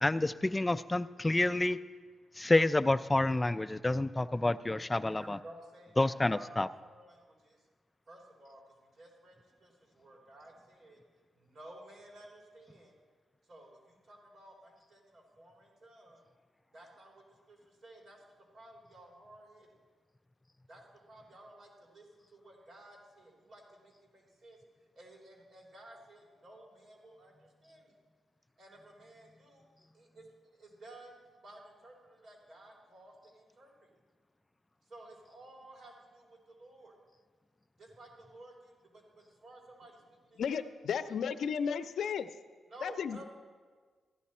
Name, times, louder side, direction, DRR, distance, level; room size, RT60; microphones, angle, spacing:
voice 1, 0.0-1.8 2.4-5.4 6.0-6.7, left 2 dB, 15° left, 14 dB, 0.3 m, -28 dB
voice 2, 5.2-7.6 8.1-8.6 9.0-11.0 11.3-12.9 13.5-16.2 16.7-18.2 18.5-19.7 20.7-20.8 21.1-24.6 24.9-27.9 28.6-29.7 29.9-30.3 30.5-31.1 31.4-33.9 34.9-36.9 37.8-41.0 42.7-43.2, right 1 dB, 50° right, -1 dB, 3.4 m, -54 dB
voice 3, 40.4-42.3 42.8-43.2, left 7 dB, 70° left, 12 dB, 0.5 m, -34 dB
14.5 x 11.0 x 4.3 m, 1.5 s
cardioid pair, 120°, 0 cm